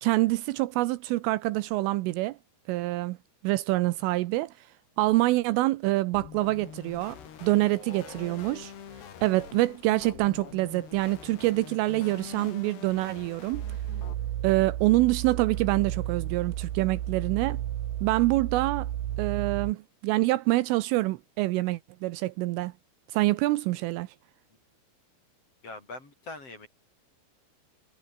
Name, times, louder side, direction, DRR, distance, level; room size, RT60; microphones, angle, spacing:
voice 1, 0.0-2.4 2.7-3.2 3.4-4.5 5.0-8.7 9.2-13.6 14.4-17.6 18.0-18.9 19.2-22.7 23.1-24.1, right 19 dB, 80° right, 3.2 m, -26 dB
sound 1, 6.1-14.1, left 8 dB, 55° left, 5.0 m, -45 dB
voice 2, 7.6-8.3 25.6-26.7, left 2 dB, 30° left, 6.2 m, -43 dB
sound 2, 13.5-19.7, right 12 dB, 65° right, 3.1 m, -33 dB
omnidirectional pair, 5.9 m